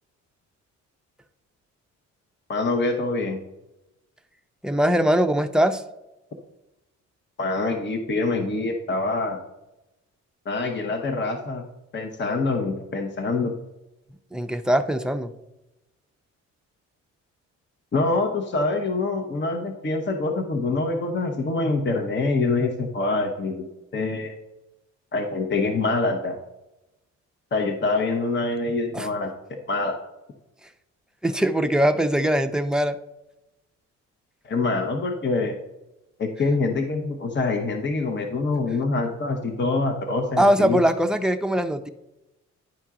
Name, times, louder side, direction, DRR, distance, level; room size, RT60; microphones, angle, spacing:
voice 1, 2.5-3.4 7.4-9.4 10.5-11.6 11.9-13.5 17.9-23.6 23.9-24.3 25.1-26.4 27.5-30.0 34.4-35.6 36.2-40.8, left 3 dB, 35° left, 4 dB, 1.0 m, -25 dB
voice 2, 4.6-5.8 14.3-15.3 28.9-29.1 31.2-33.0 40.4-41.9, equal, ahead, 7 dB, 0.5 m, -21 dB
10.5 x 4.4 x 3.7 m, 0.94 s
cardioid pair, 90°, 30 cm